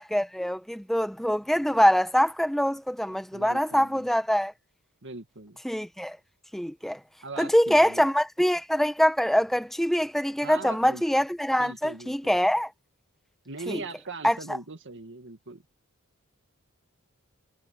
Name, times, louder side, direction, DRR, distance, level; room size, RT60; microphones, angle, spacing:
voice 1, 0.0-4.5 5.6-6.2 6.5-7.0 7.4-12.7 13.7-13.8 14.2-14.4, equal, ahead, 0.9 m, -24 dB
voice 2, 3.3-4.1 5.0-5.6 7.2-8.0 10.4-11.0 11.6-12.4 13.5-15.6, right 3 dB, 60° right, 2.1 m, -40 dB
head